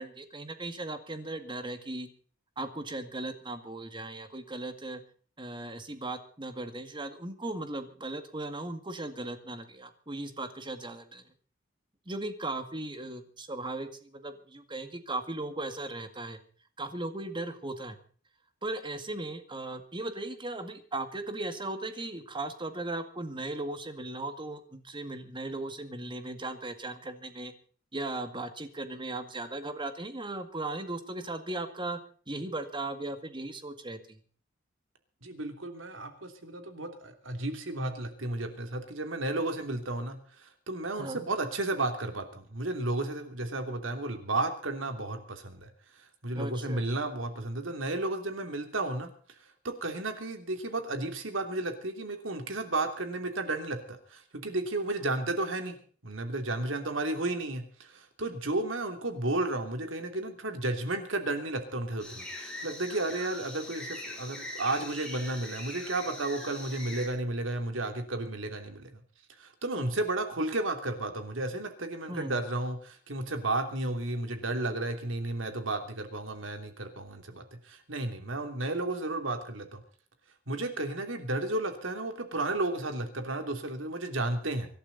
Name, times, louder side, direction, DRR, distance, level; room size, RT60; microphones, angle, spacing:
voice 1, 0.0-2.1 2.6-5.0 5.4-11.2 12.1-16.4 16.8-18.0 18.6-27.5 27.9-32.0 32.3-34.2 41.0-41.2 46.3-46.8 72.1-72.4, right 2 dB, 25° right, 8 dB, 2.0 m, -37 dB
voice 2, 35.2-45.7 46.0-49.1 49.6-55.8 56.0-69.0 69.4-79.8 80.5-84.7, right 2 dB, 80° right, 6 dB, 3.1 m, -33 dB
sound 1, 62.0-67.1, left 1 dB, 5° left, 6.3 m, -42 dB
25.5 x 11.5 x 4.1 m, 0.43 s
head